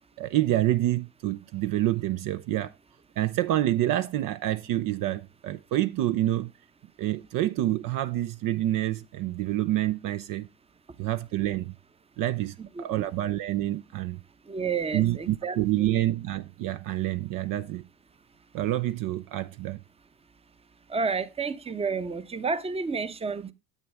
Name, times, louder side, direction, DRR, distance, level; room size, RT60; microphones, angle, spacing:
voice 1, 0.2-2.7 3.2-6.5 7.0-10.5 11.0-11.7 12.2-14.2 14.9-17.8 18.5-19.8, right 14 dB, 50° right, 0.6 m, -27 dB
voice 2, 12.6-13.1 14.5-15.9 20.9-23.5, right 5 dB, 15° right, 0.8 m, -31 dB
9.9 x 7.9 x 3.5 m
hypercardioid pair, 75°, 42 cm